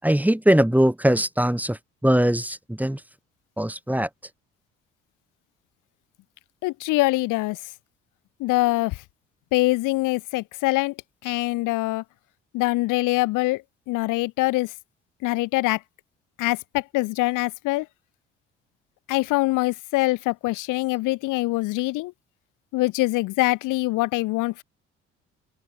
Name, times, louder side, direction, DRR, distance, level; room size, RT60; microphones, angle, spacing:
voice 1, 0.0-3.0 3.6-4.1, right 1 dB, 5° right, 7.5 m, -21 dB
voice 2, 6.6-7.6 8.4-9.0 9.5-10.9 11.2-12.0 12.5-14.7 15.2-15.8 16.4-17.9 19.1-22.1 22.7-24.6, left 20 dB, 65° left, 3.8 m, -24 dB
open air
figure-of-eight pair, 50°, 34 cm